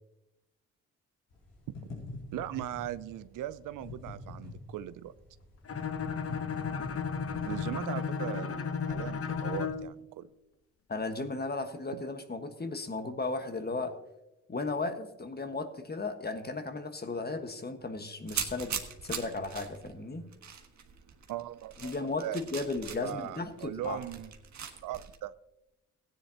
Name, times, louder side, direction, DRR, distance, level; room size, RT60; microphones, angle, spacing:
sound 1, 1.3-9.9, left 3 dB, 85° left, 4.1 m, -46 dB
voice 1, 2.3-5.1 7.4-10.3 21.3-22.4 22.9-24.3 24.8-25.3, right 12 dB, 80° right, 15 dB, 0.5 m, -39 dB
Bowed string instrument, 5.7-9.9, left 6 dB, 45° left, 0.9 m, -34 dB
voice 2, 10.9-14.0 14.5-18.8 19.0-20.3 21.8-22.3 22.5-24.0, left 3 dB, 30° left, 7 dB, 1.5 m, -35 dB
sound 2, 18.3-25.2, right 7 dB, 65° right, 1.5 m, -41 dB
16.0 x 10.0 x 2.9 m, 0.92 s
supercardioid pair, 55°, 31 cm